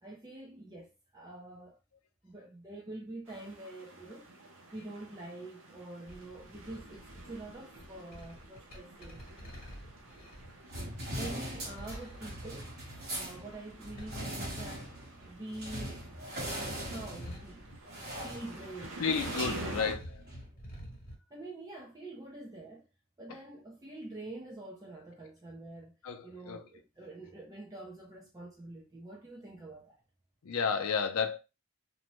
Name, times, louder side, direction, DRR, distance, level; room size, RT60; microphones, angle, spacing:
voice 1, 0.0-1.8 2.2-4.3 4.7-9.2 11.2-12.7 13.1-16.1 16.5-17.7 18.2-19.0 19.4-19.9 21.3-22.8 23.2-25.9 26.2-30.0, right 2 dB, 15° right, 0.5 m, -46 dB
sound 1, 3.2-19.9, right 2 dB, 65° right, 0.7 m, -49 dB
sound 2, 6.1-15.3 15.6-18.5 18.7-21.2, equal, 45° left, 1.1 m, -49 dB
sound 3, 10.7-20.5, right 1 dB, 50° right, 1.1 m, -41 dB
voice 2, 19.0-20.0 26.0-26.6 30.4-31.4, left 6 dB, 90° left, 0.5 m, -31 dB
2.6 x 2.1 x 3.0 m
head